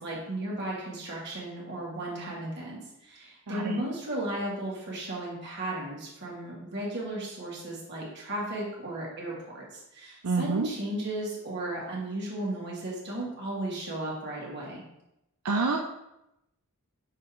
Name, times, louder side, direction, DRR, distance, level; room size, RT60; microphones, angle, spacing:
voice 1, 0.0-14.8, right 1 dB, 50° right, -5 dB, 2.2 m, -35 dB
voice 2, 3.5-3.8 10.2-10.7 15.4-15.8, right 4 dB, 80° right, 2 dB, 0.6 m, -27 dB
6.5 x 4.3 x 3.8 m, 0.88 s
head